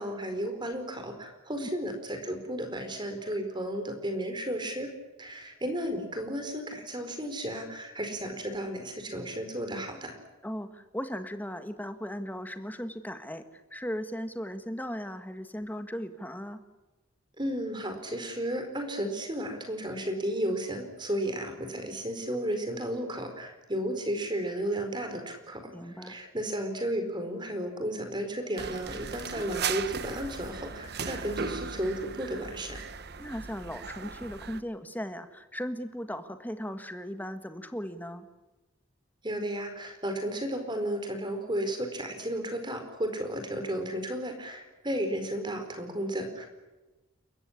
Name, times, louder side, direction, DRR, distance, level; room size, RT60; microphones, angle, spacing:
voice 1, 0.0-4.9 5.2-10.2 17.4-32.8 39.2-46.5, right 1 dB, 20° right, 6 dB, 4.5 m, -33 dB
voice 2, 10.4-16.6 25.7-26.2 33.2-38.3, equal, 10° left, 9 dB, 1.6 m, -37 dB
sound 1, 28.6-34.6, right 6 dB, 50° right, 1.0 m, -37 dB
29.5 x 15.0 x 9.9 m, 1.1 s
head